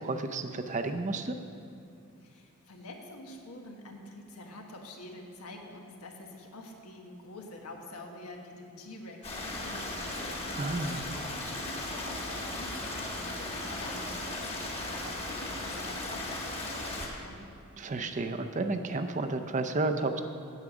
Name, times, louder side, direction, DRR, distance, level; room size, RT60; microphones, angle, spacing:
voice 1, 0.0-1.3 10.5-11.1 17.8-20.2, right 3 dB, 35° right, 7 dB, 0.5 m, -31 dB
voice 2, 2.2-17.4, left 2 dB, 90° left, 2 dB, 1.4 m, -47 dB
Stream, 9.2-17.1, left 2 dB, 30° left, 1.4 m, -36 dB
9.5 x 8.0 x 6.1 m, 2.5 s
head